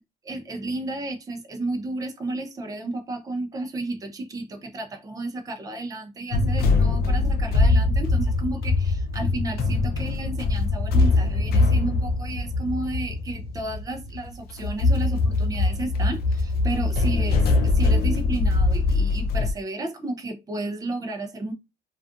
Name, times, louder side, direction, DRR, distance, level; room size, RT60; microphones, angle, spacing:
voice 1, 0.2-21.5, right 2 dB, 20° right, 0.5 m, -32 dB
sound 1, 6.3-19.5, left 3 dB, 70° left, 0.5 m, -22 dB
2.4 x 2.3 x 2.5 m
cardioid pair, 110°, 17 cm